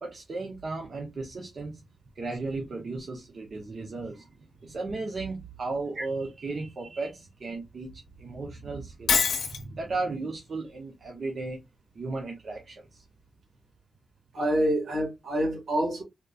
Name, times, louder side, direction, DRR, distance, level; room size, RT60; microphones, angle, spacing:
voice 1, 0.0-1.8 2.2-4.4 4.6-11.6 11.9-13.0, right 3 dB, 50° right, 0.7 m, -35 dB
Shatter, 9.1-9.6, left 6 dB, 80° left, 0.6 m, -24 dB
voice 2, 14.3-16.0, equal, 70° right, 1.6 m, -27 dB
3.6 x 2.8 x 2.2 m
wide cardioid pair, 145°, 0 cm